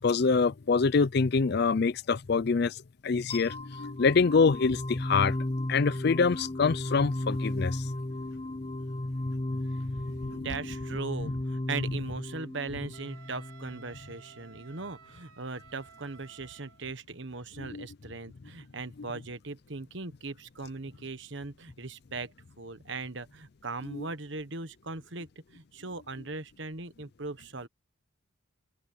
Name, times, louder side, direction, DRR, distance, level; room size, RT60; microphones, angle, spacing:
voice 1, 0.0-7.9 10.1-10.5 17.6-17.9 23.9-24.1, left 4 dB, 50° left, 0.5 m, -26 dB
sound 1, 3.3-14.2, left 1 dB, 30° left, 1.1 m, -35 dB
voice 2, 10.0-27.7, right 3 dB, 60° right, 1.4 m, -39 dB
Wind instrument woodwind instrument, 12.9-16.8, right 6 dB, 80° right, 4.6 m, -55 dB
open air
head